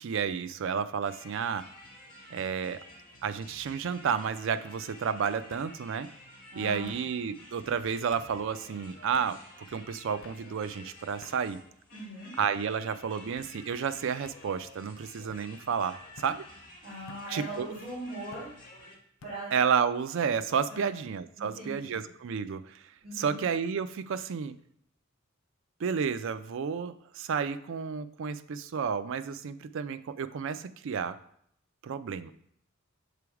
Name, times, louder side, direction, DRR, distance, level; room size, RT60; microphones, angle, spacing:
voice 1, 0.0-1.7 2.3-2.8 3.2-6.1 6.6-9.4 9.7-11.6 12.4-16.5 17.3-17.7 19.5-22.8 23.2-24.5 25.8-31.2 31.8-32.3, right 6 dB, 65° right, 12 dB, 0.4 m, -31 dB
sound 1, 1.0-19.0, left 1 dB, 40° left, 1.5 m, -51 dB
sound 2, 2.0-2.4 2.8-3.4 4.4-4.5 5.5-5.7 6.9-7.1 8.1-8.3 9.1-9.3 10.2-10.4 11.2-11.4 12.1-12.6 13.4-13.5 14.2-14.4 15.3-15.5 16.2-16.4 17.1-17.3 18.3-18.5 19.2-19.4, left 5 dB, 70° left, 0.5 m, -53 dB
voice 2, 6.5-7.0 11.9-12.3 16.8-18.5 19.2-19.5 20.7-21.0 21.4-22.0 23.0-23.4, right 1 dB, 35° right, -9 dB, 2.5 m, -40 dB
6.8 x 3.3 x 4.7 m, 0.69 s
head